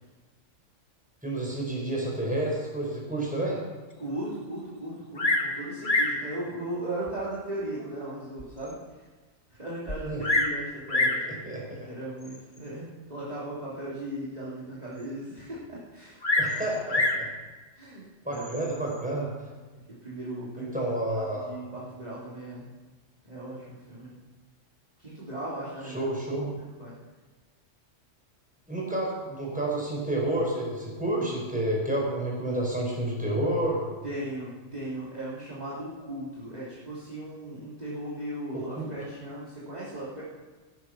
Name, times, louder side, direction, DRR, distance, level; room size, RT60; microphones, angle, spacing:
voice 1, 1.2-3.6 10.0-10.2 11.2-11.9 16.4-17.3 18.2-19.5 20.6-21.5 25.9-26.5 28.7-34.0 38.5-38.9, right 1 dB, 5° right, -3 dB, 4.9 m, -30 dB
voice 2, 4.0-9.0 9.5-11.2 11.9-16.4 17.7-18.9 19.9-20.7 21.1-22.7 23.2-24.1 25.0-26.1 26.8-27.0 34.0-40.2, right 1 dB, 30° right, -9 dB, 3.1 m, -37 dB
Bird vocalization bird call bird song, 5.2-5.5 5.8-6.2 7.1-7.2 7.8-7.9 8.4-8.5 8.7-8.8 9.9-10.6 10.9-11.3 12.2-12.6 16.2-17.3 18.3-18.8, left 2 dB, 40° left, 1.5 m, -26 dB
16.5 x 10.5 x 5.9 m, 1.3 s
omnidirectional pair, 1.3 m